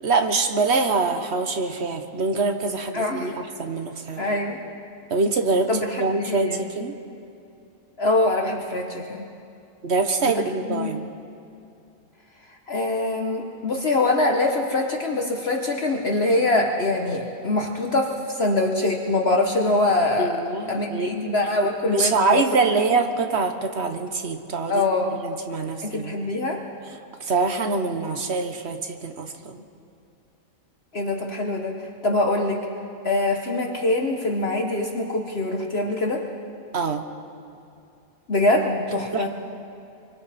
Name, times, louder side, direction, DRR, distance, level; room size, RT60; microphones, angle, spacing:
voice 1, 0.0-4.3 5.1-5.7 6.0-6.9 9.8-11.1 20.2-21.1 21.9-24.8 25.1-26.2 27.2-29.6 36.7-37.0 39.1-39.3, right 4 dB, 50° right, 6 dB, 1.4 m, -24 dB
voice 2, 2.9-3.4 4.2-4.6 5.7-6.6 8.0-9.3 10.2-10.4 10.7-11.0 12.7-20.4 20.7-22.5 22.7-22.8 24.7-25.2 25.8-26.6 30.9-31.8 32.0-32.6 33.0-36.3 38.3-39.3, left 2 dB, 50° left, 2 dB, 1.4 m, -24 dB
25.5 x 24.0 x 4.3 m, 2.6 s
omnidirectional pair, 1.5 m